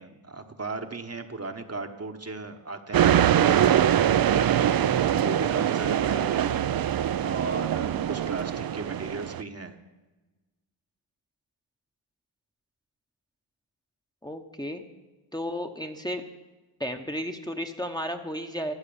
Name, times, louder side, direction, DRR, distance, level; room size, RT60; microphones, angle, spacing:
voice 1, 0.0-6.5 7.2-9.8, right 3 dB, 30° right, 6 dB, 1.0 m, -36 dB
sound 1, 2.9-9.4, right 10 dB, 50° right, 0.5 m, -23 dB
voice 2, 14.2-14.8 15.3-16.2 16.8-18.7, equal, 10° left, 4 dB, 0.9 m, -33 dB
14.0 x 6.7 x 7.0 m, 1.2 s
cardioid pair, 40°, 49 cm